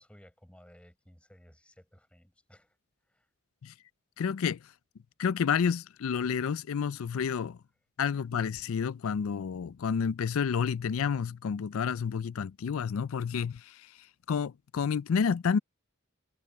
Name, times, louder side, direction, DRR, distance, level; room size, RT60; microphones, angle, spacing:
voice 1, 0.0-2.8 3.1-3.3, equal, 5° left, 5.2 m, -57 dB
voice 2, 4.2-4.6 5.2-7.6 8.0-13.9 14.3-15.6, left 6 dB, 80° left, 0.4 m, -30 dB
head